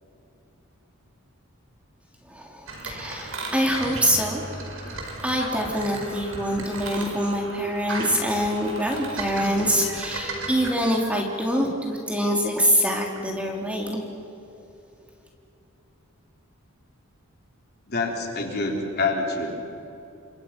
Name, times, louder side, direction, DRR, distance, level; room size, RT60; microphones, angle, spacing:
voice 1, 2.3-4.6 4.8-4.9 5.2-14.0, equal, 5° right, 0 dB, 3.0 m, -25 dB
sound 1, 2.7-10.7, right 2 dB, 65° right, 5.4 m, -36 dB
voice 2, 17.9-19.6, left 3 dB, 45° left, 1 dB, 3.9 m, -26 dB
30.0 x 26.0 x 6.0 m, 2.9 s
head